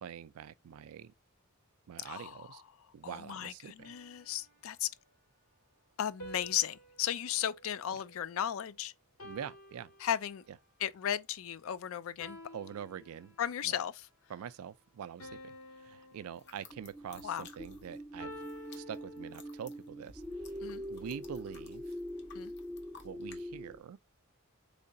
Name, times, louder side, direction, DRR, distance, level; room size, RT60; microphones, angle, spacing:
voice 1, 0.0-1.1 1.9-2.6 2.9-4.0 9.2-9.9 12.5-13.4 13.6-13.8 14.3-20.5 20.9-21.9 23.0-24.0, right 8 dB, 80° right, 0.3 m, -45 dB
voice 2, 2.1-2.6 3.0-4.9 6.0-8.9 10.0-10.4 10.8-12.4 13.4-14.1 17.2-17.5 20.6-20.8 22.3-22.5, left 10 dB, 70° left, 0.3 m, -35 dB
sound 1, 3.8-5.0 6.2-8.6 9.2-10.7 12.2-13.7 15.2-17.1 18.2-19.8, equal, 90° left, 2.0 m, -52 dB
sound 2, 16.3-18.0 18.3-23.4, left 5 dB, 50° left, 0.7 m, -57 dB
sound 3, 16.7-23.8, equal, 5° right, 0.4 m, -44 dB
3.8 x 3.2 x 2.6 m
head